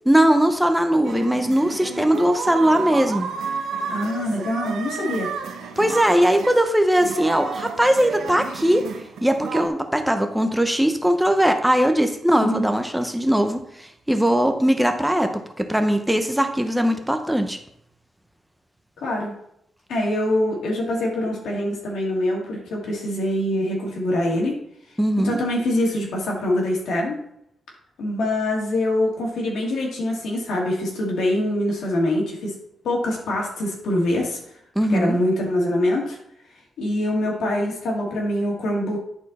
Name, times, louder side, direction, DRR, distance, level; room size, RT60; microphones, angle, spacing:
voice 1, 0.1-3.3 5.8-8.9 9.2-17.6 25.0-25.4 34.8-35.2, equal, 5° right, 6 dB, 0.7 m, -20 dB
sound 1, 1.0-9.7, right 5 dB, 90° right, 0.9 m, -31 dB
voice 2, 3.9-5.3 12.4-12.7 19.0-19.3 19.9-24.5 25.2-27.1 28.0-32.6 32.8-34.4 34.9-36.2 36.8-39.0, left 1 dB, 85° left, -1 dB, 2.5 m, -24 dB
10.5 x 4.4 x 4.2 m, 0.72 s
wide cardioid pair, 135°, 0 cm